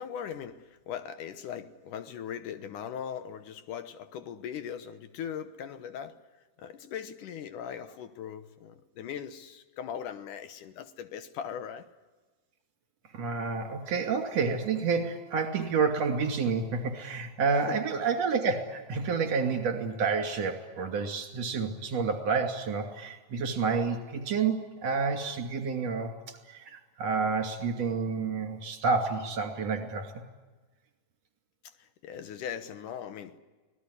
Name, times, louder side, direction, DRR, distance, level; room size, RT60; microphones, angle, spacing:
voice 1, 0.0-6.2 6.6-11.9 17.7-17.8 31.6-33.4, left 8 dB, 75° left, 2.5 m, -39 dB
voice 2, 13.1-30.1, right 5 dB, 50° right, 3.7 m, -29 dB
25.5 x 18.5 x 9.8 m
omnidirectional pair, 3.9 m